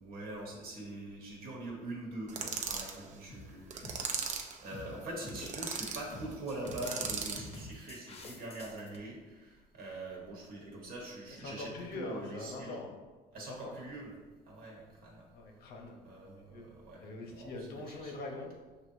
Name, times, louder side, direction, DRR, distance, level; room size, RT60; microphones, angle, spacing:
voice 1, 0.0-12.8 13.3-14.1 14.4-15.3 16.0-18.1, right 1 dB, 65° right, -2 dB, 1.1 m, -44 dB
sound 1, 2.3-2.6 3.3-3.5 3.8-4.1 4.7-5.0 5.2-5.8 6.1-9.0, left 2 dB, 35° left, 0.7 m, -47 dB
sound 2, 2.3-3.0 3.7-4.6 5.2-6.0 6.7-7.5, right 6 dB, 45° right, 0.5 m, -37 dB
voice 2, 11.4-12.9 13.3-13.7 15.3-16.0 16.5-16.6 17.0-18.5, left 2 dB, 70° left, 2 dB, 0.9 m, -43 dB
6.4 x 2.8 x 2.7 m, 1.3 s
cardioid pair, 110°, 17 cm